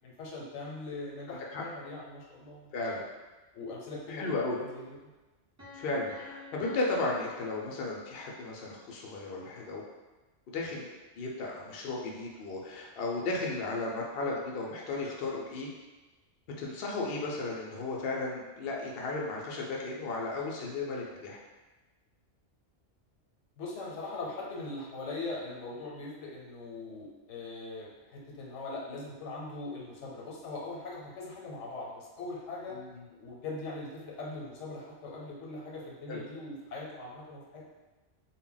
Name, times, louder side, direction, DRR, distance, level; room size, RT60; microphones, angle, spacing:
voice 1, 0.0-3.0 3.5-5.0 23.6-32.8 33.1-37.7, left 2 dB, 80° left, -4 dB, 1.0 m, -41 dB
voice 2, 1.3-1.6 2.7-3.0 4.1-4.6 5.7-9.8 10.5-10.9 11.2-15.7 16.6-21.4 32.7-33.0 36.1-36.2, left 3 dB, 65° left, -2 dB, 0.7 m, -34 dB
Piano, 5.6-8.4, left 4 dB, 25° right, 0.3 m, -51 dB
2.1 x 2.1 x 3.7 m, 1.2 s
omnidirectional pair, 1.2 m